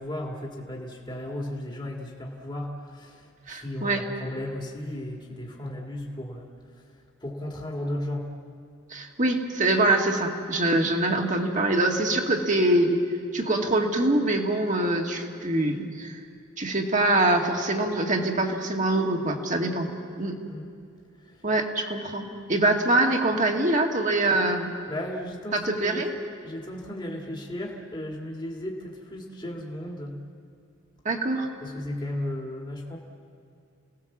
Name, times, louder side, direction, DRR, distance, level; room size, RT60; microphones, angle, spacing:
voice 1, 0.0-3.2 3.5-6.5 7.2-8.3 20.5-20.7 24.9-26.0 26.4-30.2 31.6-33.0, left 1 dB, 25° left, -1 dB, 2.2 m, -35 dB
voice 2, 3.5-4.0 8.9-13.0 13.3-16.2 16.6-19.9 20.2-20.4 21.4-24.7 25.5-26.1 31.1-31.5, right 2 dB, 40° right, 2 dB, 2.1 m, -24 dB
29.5 x 18.0 x 7.3 m, 2.4 s
head